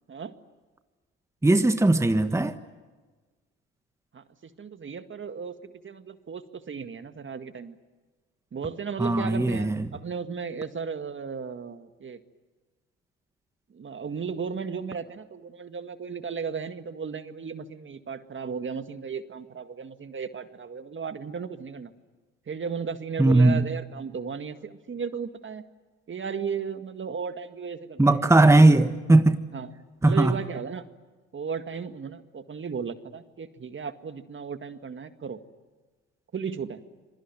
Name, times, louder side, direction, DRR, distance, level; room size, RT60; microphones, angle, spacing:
voice 1, 1.4-2.5 9.0-9.8 23.2-23.6 28.0-29.4 30.0-30.4, right 2 dB, 10° right, 1.4 m, -19 dB
voice 2, 4.1-7.8 8.5-12.2 13.7-21.9 22.5-25.7 26.1-28.8 29.5-29.7 30.0-30.8 31.3-35.4 36.3-36.8, right 6 dB, 40° right, 1.9 m, -35 dB
27.0 x 23.0 x 9.3 m
hypercardioid pair, 60°, 31 cm